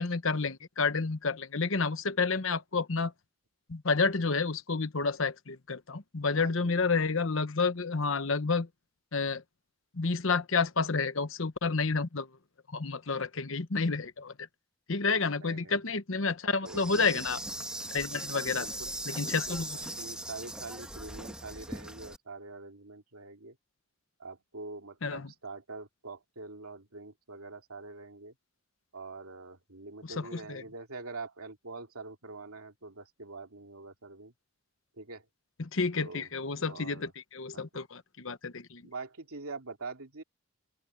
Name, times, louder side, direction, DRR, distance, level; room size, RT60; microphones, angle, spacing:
voice 1, 0.0-3.1 3.7-8.7 9.1-9.4 9.9-12.3 12.7-14.3 14.9-17.4 17.9-18.7 19.1-19.8 25.0-25.3 30.0-30.6 35.6-38.8, left 4 dB, 65° left, 1.1 m, -30 dB
voice 2, 6.4-7.0 15.4-15.8 16.6-17.2 18.3-18.9 19.2-19.6 20.0-23.6 24.2-28.3 28.9-34.3 35.0-35.3 36.0-36.3 36.7-37.1 37.5-37.7 38.8-40.2, right 3 dB, 90° right, 2.9 m, -44 dB
Insect, 16.6-22.2, right 1 dB, 5° right, 1.6 m, -39 dB
open air
head